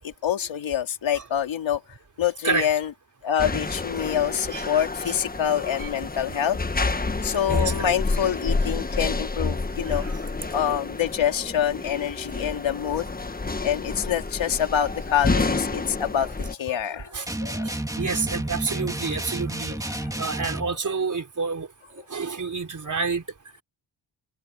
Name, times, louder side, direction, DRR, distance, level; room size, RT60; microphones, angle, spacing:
voice 1, 0.0-1.8 2.2-2.9 3.2-6.6 7.2-10.1 10.5-13.1 13.6-17.6 19.7-20.9, left 9 dB, 85° left, 3.1 m, -26 dB
sound 1, 3.4-16.5, left 3 dB, 20° left, 1.4 m, -29 dB
voice 2, 7.5-7.9 9.9-10.1 17.1-17.2 17.6-19.8 20.2-21.7 22.1-23.2, right 5 dB, 40° right, 4.1 m, -28 dB
sound 2, 17.3-20.8, right 1 dB, 10° right, 2.5 m, -31 dB
cardioid pair, 100°, 45 cm